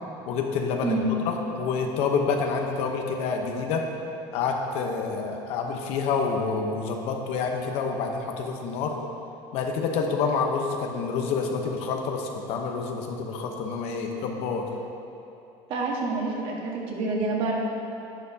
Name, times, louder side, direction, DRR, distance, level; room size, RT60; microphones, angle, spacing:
voice 1, 0.3-3.9 4.3-9.0 9.5-14.7, left 5 dB, 65° left, 2 dB, 1.0 m, -28 dB
voice 2, 15.7-17.5, right 3 dB, 50° right, -2 dB, 1.6 m, -27 dB
10.5 x 9.3 x 2.8 m, 2.8 s
cardioid pair, 150°, 11 cm